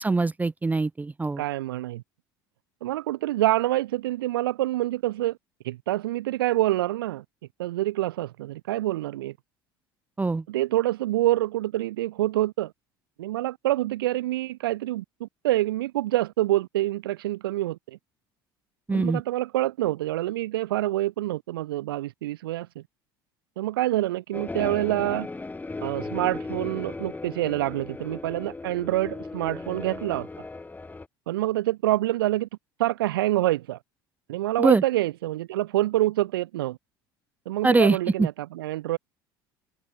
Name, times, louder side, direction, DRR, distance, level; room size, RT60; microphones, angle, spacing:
voice 1, 0.0-1.4 10.2-10.4 18.9-19.2 34.6-34.8 37.6-38.3, right 3 dB, 15° right, 0.6 m, -23 dB
voice 2, 1.4-2.0 2.8-5.4 5.6-7.2 7.6-9.3 10.5-12.7 13.2-18.0 18.9-22.8 23.6-25.3 25.8-30.3 31.3-32.5 32.8-33.8 34.3-36.8 37.5-39.0, right 15 dB, 75° right, 0.6 m, -26 dB
sound 1, 24.3-31.1, left 3 dB, 15° left, 1.5 m, -36 dB
figure-of-eight pair, 65°, 12 cm